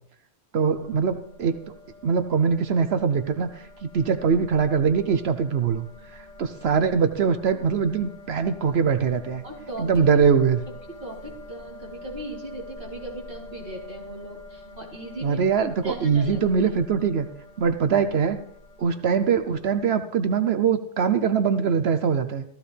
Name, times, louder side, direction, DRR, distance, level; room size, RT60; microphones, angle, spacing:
voice 1, 0.5-1.7 2.0-3.5 3.9-5.8 6.1-9.4 9.8-10.6 15.2-17.3 17.6-18.4 18.8-22.4, right 6 dB, 70° right, 9 dB, 1.0 m, -22 dB
sound 1, 0.6-19.8, left 2 dB, 25° right, 5.1 m, -45 dB
voice 2, 9.4-10.1 11.0-15.4 15.8-16.7, right 1 dB, 50° right, -4 dB, 4.2 m, -38 dB
16.0 x 14.5 x 3.3 m, 0.67 s
omnidirectional pair, 1.1 m